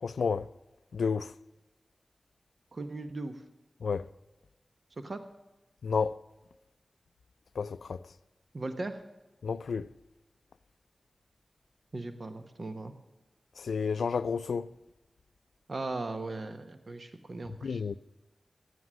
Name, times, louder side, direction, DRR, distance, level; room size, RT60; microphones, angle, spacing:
voice 1, 0.0-0.5 0.9-1.3 3.8-4.1 5.8-6.1 7.6-8.0 9.4-9.9 13.6-14.7 17.6-18.0, left 5 dB, 90° left, 0.3 m, -30 dB
voice 2, 2.7-3.4 5.0-5.2 8.5-9.0 11.9-12.9 15.7-17.8, right 2 dB, 60° right, 1.0 m, -38 dB
14.0 x 9.5 x 6.1 m
cardioid pair, 40°, 0 cm